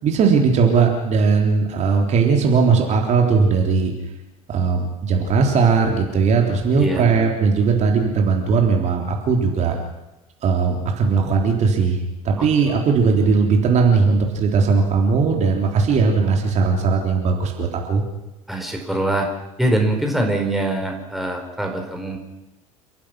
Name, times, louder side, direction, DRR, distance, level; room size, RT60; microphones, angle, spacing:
voice 1, 0.0-3.9 4.5-9.8 10.4-18.0, right 5 dB, 40° right, 1 dB, 3.7 m, -18 dB
voice 2, 6.7-7.3 12.4-12.7 18.5-19.3 19.6-22.2, right 1 dB, ahead, 2 dB, 4.6 m, -23 dB
29.0 x 15.0 x 6.2 m, 0.99 s
figure-of-eight pair, 70°, 18 cm